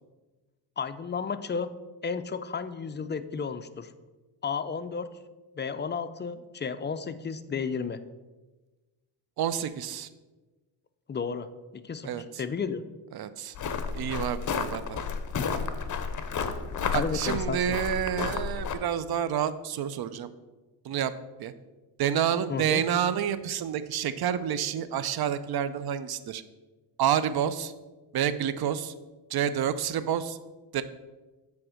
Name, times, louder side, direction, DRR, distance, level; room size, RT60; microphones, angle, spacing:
voice 1, 0.8-1.7 2.0-3.9 4.4-5.1 5.6-8.0 11.1-11.5 11.7-12.8 15.4-15.5 16.9-17.8 22.5-22.8, left 5 dB, 25° left, 11 dB, 0.4 m, -33 dB
voice 2, 9.4-10.1 12.0-12.2 13.1-13.5 13.9-15.0 16.9-20.3 20.8-21.1 21.4-21.5 22.0-26.4 27.0-27.7 28.1-28.9 29.3-30.4 30.7-30.8, right 9 dB, 55° right, 14 dB, 0.6 m, -29 dB
sound 1, 13.5-18.8, left 5 dB, 45° left, 0.7 m, -31 dB
7.8 x 3.5 x 6.2 m, 1.2 s
cardioid pair, 90°, 44 cm